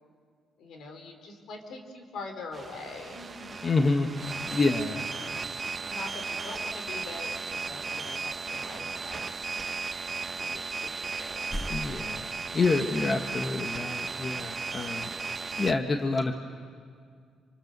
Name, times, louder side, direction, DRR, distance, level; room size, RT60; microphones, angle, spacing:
voice 1, 0.6-3.5 5.2-5.3 5.6-9.3 10.3-11.6, left 3 dB, 70° left, 5 dB, 3.9 m, -43 dB
sound 1, 2.5-15.7, right 4 dB, 35° right, 1.0 m, -35 dB
voice 2, 3.6-4.1 4.5-5.0 11.7-15.1 15.6-16.4, left 3 dB, 35° left, 5 dB, 1.3 m, -27 dB
sound 2, 11.2-12.8 15.3-15.4, equal, ahead, 1.6 m, -39 dB
27.5 x 25.5 x 6.8 m, 2.1 s
cardioid pair, 90°, 0 cm